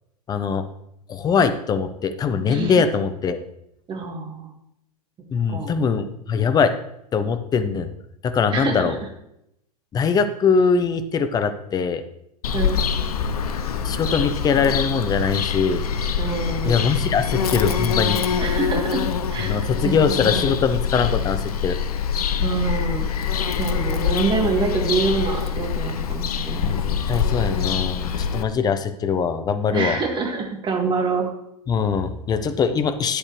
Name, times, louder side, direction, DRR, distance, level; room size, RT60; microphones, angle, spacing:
voice 1, 0.3-0.6 1.1-3.4 5.3-6.7 7.1-7.9 8.2-9.0 9.9-12.0 13.8-15.8 16.6-18.2 19.4-21.8 26.5-30.0 31.7-33.2, left 6 dB, 20° left, 10 dB, 0.8 m, -22 dB
voice 2, 2.5-2.8 3.9-4.5 5.5-5.8 8.5-9.0 12.5-12.8 16.2-16.9 18.4-19.0 19.3-19.9 20.2-20.5 22.4-23.1 23.6-26.7 29.7-31.3, right 4 dB, 25° right, 2 dB, 2.1 m, -26 dB
Bird vocalization bird call bird song, 12.4-28.4, left 7 dB, 65° left, 0.8 m, -24 dB
11.0 x 8.8 x 3.2 m, 0.79 s
figure-of-eight pair, 100°, 20 cm